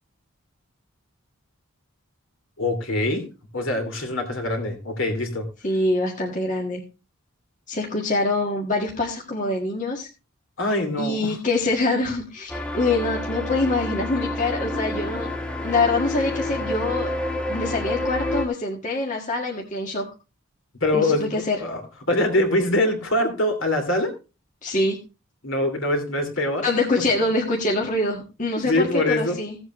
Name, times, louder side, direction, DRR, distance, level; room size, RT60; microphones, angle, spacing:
voice 1, 2.6-3.3 3.5-5.4 10.6-11.3 20.8-21.8 22.1-24.1 25.4-26.7 28.6-29.4, left 1 dB, 65° left, 4 dB, 2.9 m, -23 dB
voice 2, 5.6-6.8 7.7-10.1 11.0-15.3 15.6-17.1 17.5-20.0 20.9-21.6 24.6-25.0 26.6-29.6, left 2 dB, 35° left, -1 dB, 1.6 m, -24 dB
sound 1, 12.5-18.5, left 1 dB, 5° left, 1.1 m, -28 dB
16.0 x 7.9 x 3.1 m, 0.29 s
head